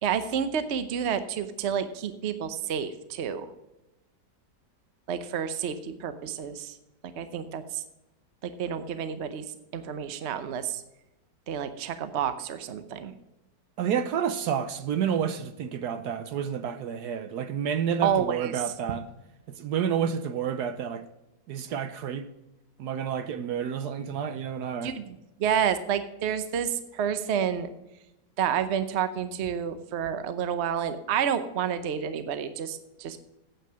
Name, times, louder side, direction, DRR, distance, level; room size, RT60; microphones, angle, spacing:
voice 1, 0.0-3.5 5.1-6.7 7.0-7.8 8.4-9.4 9.7-10.8 11.5-13.1 18.0-18.5 24.8-27.7 28.4-33.2, right 8 dB, 50° right, 0.9 m, -29 dB
voice 2, 13.8-19.0 19.5-21.0 21.5-22.3 22.8-24.9, right 8 dB, 70° right, 1.2 m, -29 dB
9.1 x 8.6 x 6.1 m
omnidirectional pair, 1.8 m